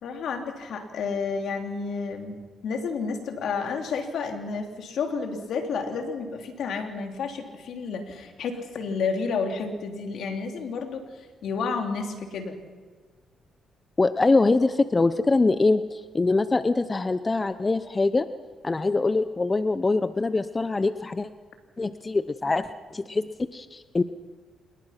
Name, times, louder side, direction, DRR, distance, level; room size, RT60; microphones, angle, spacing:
voice 1, 0.0-12.6, left 5 dB, 70° left, 4 dB, 3.2 m, -31 dB
voice 2, 14.0-18.3 18.6-21.3 21.8-24.0, left 3 dB, 25° left, 12 dB, 0.8 m, -23 dB
27.5 x 21.0 x 5.9 m, 1.4 s
cardioid pair, 90°, 0 cm